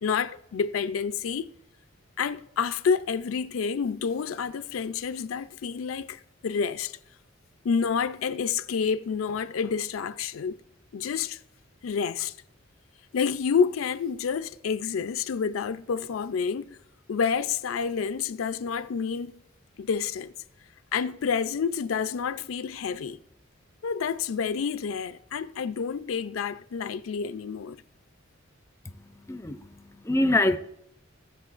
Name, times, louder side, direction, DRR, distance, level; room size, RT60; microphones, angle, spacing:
voice 1, 0.0-1.5 2.2-7.0 7.6-10.6 10.9-11.4 11.8-12.4 13.1-16.8 17.1-19.4 19.8-20.3 20.9-23.2 23.8-27.8, left 6 dB, 80° left, 0.4 m, -29 dB
voice 2, 28.9-30.6, left 2 dB, 15° left, 0.4 m, -26 dB
18.0 x 6.6 x 2.5 m
head